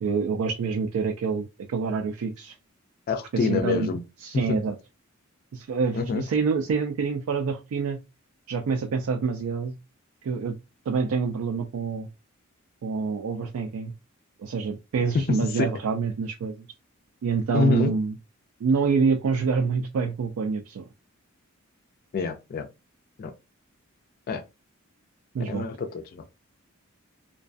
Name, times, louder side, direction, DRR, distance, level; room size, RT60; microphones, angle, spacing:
voice 1, 0.0-2.6 3.3-4.8 5.5-8.0 8.5-9.7 10.2-10.6 10.9-12.1 12.8-13.9 14.4-16.7 17.2-18.2 18.6-20.9 25.3-25.7, right 5 dB, 80° right, 0.3 m, -27 dB
voice 2, 3.1-4.0 4.5-4.6 5.9-6.2 15.5-15.7 17.5-17.9 22.1-22.7 23.2-23.3 24.3-24.4 25.5-26.2, left 4 dB, 45° left, 0.3 m, -26 dB
2.3 x 2.2 x 2.4 m
head